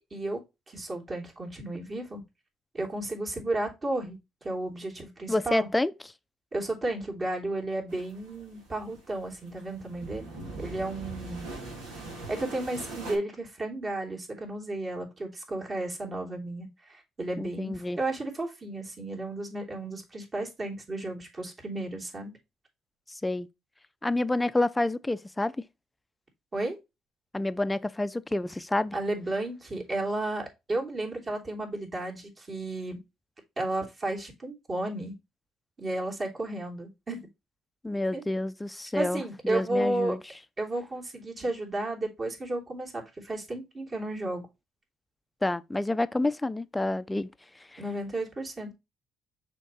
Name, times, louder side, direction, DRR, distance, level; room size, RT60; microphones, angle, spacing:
voice 1, 0.7-2.2 2.7-5.7 6.5-10.2 10.6-11.4 12.3-22.3 26.5-26.8 28.9-33.0 33.6-35.1 35.8-37.3 38.1-38.2 38.9-40.2 40.6-44.5 47.8-48.7, right 2 dB, 35° right, 3.2 m, -33 dB
voice 2, 5.3-5.9 17.4-18.0 23.2-23.5 24.0-25.5 27.3-28.9 37.8-40.2 45.4-47.3 47.7-47.8, left 2 dB, 15° left, 0.6 m, -28 dB
sound 1, 7.9-13.2, right 2 dB, 85° right, 2.7 m, -42 dB
6.3 x 4.5 x 4.1 m
supercardioid pair, 70°, 0 cm